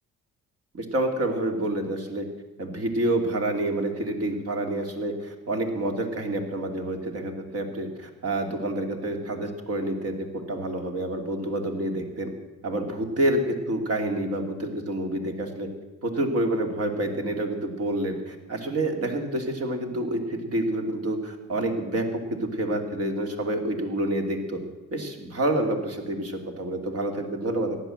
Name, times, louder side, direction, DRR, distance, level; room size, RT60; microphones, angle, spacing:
voice 1, 0.7-2.3 2.6-12.3 12.6-15.7 16.0-24.6 24.9-27.8, right 1 dB, 50° right, 4 dB, 2.7 m, -28 dB
15.0 x 10.5 x 7.8 m, 1.2 s
cardioid pair, 90°, 30 cm